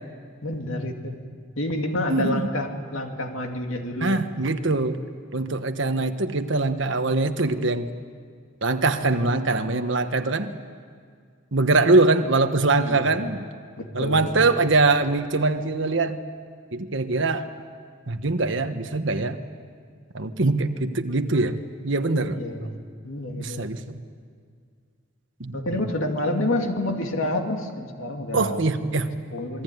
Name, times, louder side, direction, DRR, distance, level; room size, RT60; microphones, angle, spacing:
voice 1, 0.4-1.2 1.6-4.2 12.8-13.2 13.8-14.4 22.3-22.8 23.0-23.7 25.5-28.6 29.3-29.6, left 1 dB, 75° left, 3 dB, 2.5 m, -28 dB
voice 2, 2.1-2.5 4.0-5.0 5.3-7.9 8.6-10.5 11.5-13.4 13.9-16.2 16.7-17.5 18.1-19.4 20.1-21.6 21.8-22.7 23.4-23.8 25.4-25.8 28.3-29.2, right 3 dB, 65° right, 8 dB, 1.3 m, -23 dB
27.5 x 20.5 x 9.5 m, 2.1 s
head